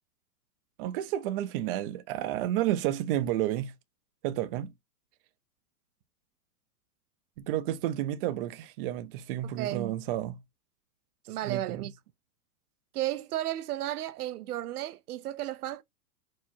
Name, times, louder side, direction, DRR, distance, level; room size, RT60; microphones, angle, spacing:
voice 1, 0.8-3.7 4.2-4.7 7.4-10.4 11.4-11.8, right 13 dB, 40° right, 0.6 m, -31 dB
voice 2, 9.4-9.9 11.3-11.9 12.9-15.8, right 13 dB, 85° right, 0.6 m, -33 dB
4.7 x 2.1 x 4.2 m
hypercardioid pair, 135°, 44 cm